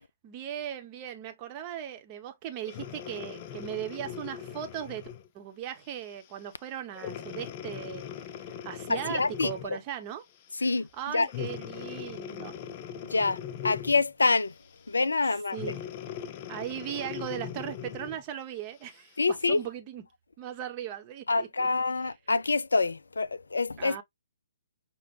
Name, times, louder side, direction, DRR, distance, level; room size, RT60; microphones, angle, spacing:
voice 1, 0.2-5.1 5.3-10.2 10.6-10.7 11.0-12.5 15.2-15.8 16.5-19.2 19.5-20.0 20.4-21.7 23.8-24.0, right 10 dB, 25° right, 0.7 m, -38 dB
Breathing, 2.6-5.3 5.9-6.1 6.9-9.8 11.3-14.1 15.5-18.2 18.9-19.0, left 9 dB, 30° left, 0.8 m, -40 dB
voice 2, 8.9-9.5 10.6-10.9 11.1-11.3 13.1-14.5 14.9-15.6 19.2-19.6 21.3-24.0, left 3 dB, 70° left, 0.3 m, -26 dB
5.8 x 2.1 x 3.0 m
figure-of-eight pair, 130°, 0 cm